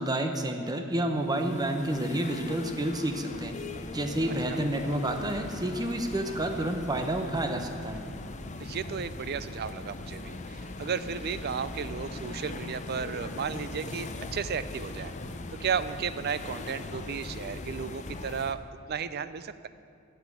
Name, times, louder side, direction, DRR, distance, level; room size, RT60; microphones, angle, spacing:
voice 1, 0.0-3.6 3.9-8.0, right 1 dB, 20° right, 5 dB, 0.9 m, -29 dB
sound 1, 1.1-18.5, left 2 dB, 35° left, 0.6 m, -40 dB
voice 2, 8.6-15.1 15.5-18.6 18.9-19.7, right 6 dB, 50° right, 13 dB, 0.5 m, -34 dB
13.5 x 6.0 x 8.4 m, 2.4 s
head